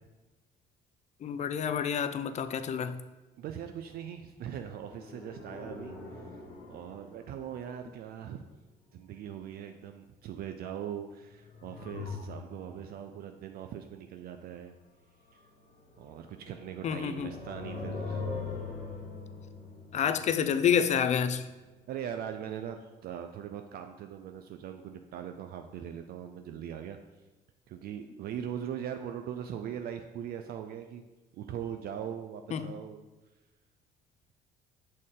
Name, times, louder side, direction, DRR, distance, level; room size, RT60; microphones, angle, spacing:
voice 1, 1.2-3.0 16.8-17.3 19.9-21.5 32.5-32.7, left 8 dB, 45° left, 0.4 m, -28 dB
voice 2, 3.4-6.3 6.7-8.4 8.9-14.7 15.3-15.4 16.0-18.7 20.1-20.3 21.9-27.0 27.7-31.0 31.3-33.1, right 9 dB, 65° right, 0.4 m, -41 dB
sound 1, 4.8-7.8 11.2-12.9 15.3-21.3 21.6-21.7, left 4 dB, 60° left, 1.4 m, -42 dB
6.5 x 4.2 x 3.7 m
cardioid pair, 110°, 17 cm